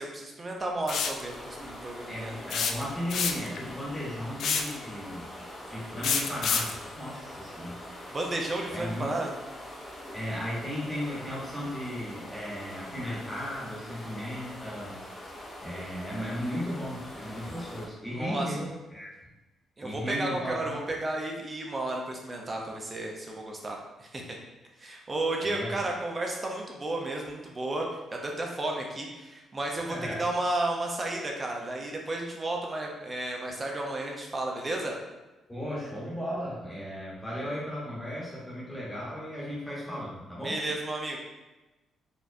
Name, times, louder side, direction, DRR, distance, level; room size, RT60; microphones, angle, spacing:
voice 1, 0.0-2.3 8.1-9.3 18.1-18.5 19.8-24.2 24.8-35.0 40.4-41.2, right 2 dB, 20° right, 0 dB, 0.5 m, -33 dB
sound 1, 0.9-1.2 2.5-3.6 4.4-4.8 6.0-6.8, left 6 dB, 60° left, 0.3 m, -27 dB
sound 2, 1.2-17.9, left 1 dB, 30° left, 0.8 m, -44 dB
voice 2, 2.1-8.2 8.7-9.1 10.1-15.0 15.2-19.1 19.8-20.8 25.4-25.8 29.8-30.2 35.5-40.6, equal, 5° left, -7 dB, 1.1 m, -36 dB
4.1 x 2.9 x 2.5 m, 1.1 s
cardioid pair, 155°, 0 cm